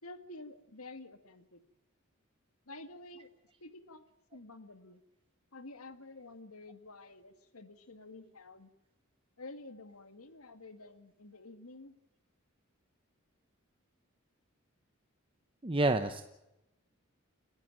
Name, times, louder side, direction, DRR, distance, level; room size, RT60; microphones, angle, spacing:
voice 1, 0.0-1.6 2.7-3.3 3.6-4.0 4.3-5.0 5.5-8.7 9.4-12.0, left 2 dB, 90° left, 9 dB, 1.9 m, -50 dB
voice 2, 15.6-16.2, right 2 dB, 25° right, 7 dB, 0.9 m, -28 dB
30.0 x 11.5 x 9.0 m, 0.92 s
head